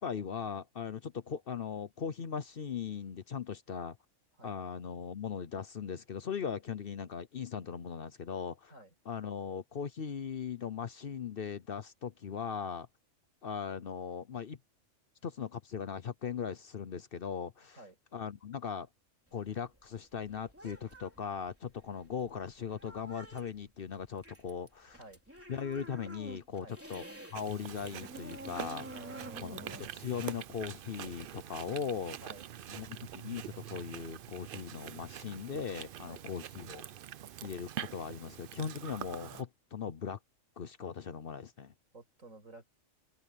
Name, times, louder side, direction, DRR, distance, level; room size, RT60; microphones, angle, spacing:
voice 1, 0.0-4.0 4.4-8.7 9.1-12.9 13.4-14.6 15.2-17.8 18.1-18.9 19.3-25.0 25.5-28.9 29.3-29.6 29.9-32.2 32.7-36.8 37.4-40.2 40.6-41.7, left 7 dB, 50° left, 0.9 m, -39 dB
sound 1, 19.3-27.4 27.7-31.4, right 1 dB, 10° right, 3.8 m, -49 dB
voice 2, 24.9-25.2 26.6-26.8 28.9-29.9 32.2-32.4 36.0-36.2 41.9-42.7, right 2 dB, 85° right, 6.5 m, -52 dB
Chewing mastication, 27.3-39.4, right 10 dB, 60° right, 0.6 m, -45 dB
open air
omnidirectional pair, 1.3 m